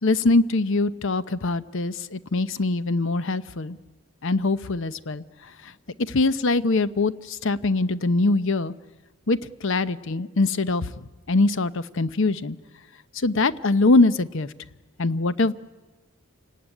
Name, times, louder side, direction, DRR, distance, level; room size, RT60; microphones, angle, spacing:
voice 1, 0.0-3.8 4.2-5.2 6.1-8.7 9.3-10.9 11.3-12.6 13.1-14.5 15.0-15.5, left 2 dB, 55° left, 15 dB, 0.7 m, -23 dB
28.0 x 17.5 x 10.0 m, 1.2 s
head